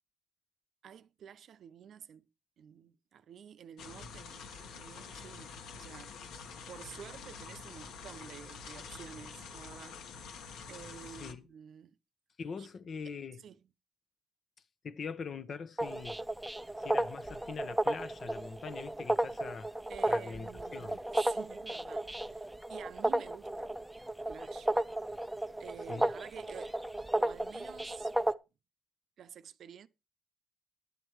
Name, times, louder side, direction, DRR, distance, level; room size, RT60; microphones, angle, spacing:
voice 1, 0.8-2.3 2.6-6.2 6.7-10.0 10.7-12.0 12.6-12.7 13.0-13.1 13.4-13.6 19.9-23.8 24.3-24.8 25.6-26.8 27.2-28.1 29.2-29.9, right 8 dB, 60° right, 0.7 m, -50 dB
sound 1, 3.8-11.3, left 5 dB, 80° left, 1.5 m, -47 dB
voice 2, 11.1-11.5 12.4-13.4 14.8-16.2 16.8-19.7 20.1-21.0 25.9-26.1, left 5 dB, 45° left, 0.9 m, -43 dB
sound 2, 15.8-28.3, right 1 dB, 5° right, 0.5 m, -34 dB
11.5 x 8.1 x 4.6 m
cardioid pair, 110°, 0 cm